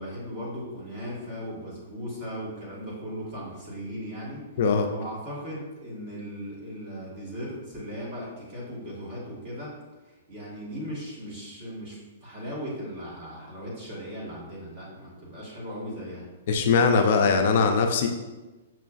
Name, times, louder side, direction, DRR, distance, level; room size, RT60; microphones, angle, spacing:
voice 1, 0.0-4.4 4.9-9.7 10.0-16.3, equal, 30° right, -6 dB, 1.3 m, -37 dB
voice 2, 16.5-18.1, left 5 dB, 50° left, 4 dB, 0.3 m, -21 dB
6.0 x 2.4 x 2.3 m, 1.2 s
hypercardioid pair, 160°, 0 cm